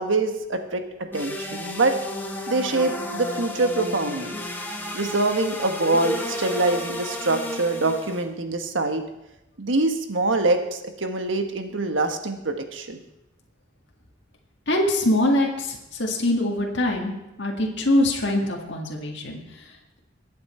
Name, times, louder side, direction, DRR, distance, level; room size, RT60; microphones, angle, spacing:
voice 1, 0.0-2.0 2.5-4.4 4.9-9.0 9.6-13.0, right 2 dB, 85° right, 6 dB, 1.4 m, -24 dB
sound 1, 1.1-8.2, left 1 dB, 10° left, 1.9 m, -32 dB
voice 2, 14.7-17.1 17.4-19.4, left 1 dB, 65° left, -1 dB, 1.9 m, -23 dB
22.0 x 8.6 x 4.4 m, 0.90 s
head